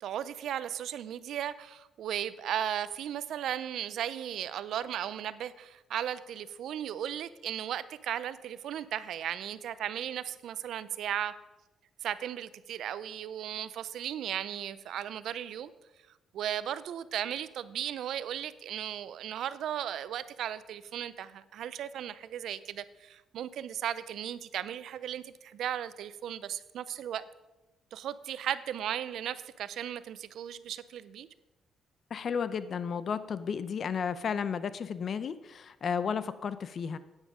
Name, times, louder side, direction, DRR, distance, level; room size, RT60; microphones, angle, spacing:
voice 1, 0.0-11.3 12.0-15.7 16.3-27.3 27.9-31.3, right 10 dB, 75° right, 16 dB, 0.4 m, -36 dB
voice 2, 32.1-37.0, left 6 dB, 55° left, 14 dB, 0.6 m, -33 dB
9.1 x 9.0 x 4.9 m, 1.0 s
cardioid pair, 90°, 0 cm